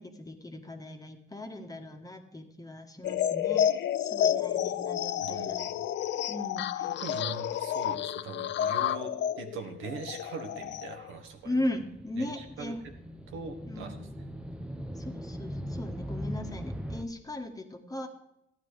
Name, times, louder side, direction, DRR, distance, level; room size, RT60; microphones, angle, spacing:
voice 1, 0.0-3.6 4.0-5.6 6.3-6.9 11.4-12.8 13.7-13.9 15.0-18.1, left 1 dB, 20° left, 4 dB, 1.6 m, -37 dB
sound 1, 3.0-11.1, left 10 dB, 65° left, 0.5 m, -30 dB
voice 2, 5.2-5.9 6.9-11.5 12.2-12.7 13.3-14.0, right 5 dB, 85° right, 4 dB, 1.5 m, -41 dB
sound 2, 10.5-17.0, equal, 5° right, 0.9 m, -40 dB
13.5 x 9.6 x 4.8 m, 0.81 s
cardioid pair, 90°, 20 cm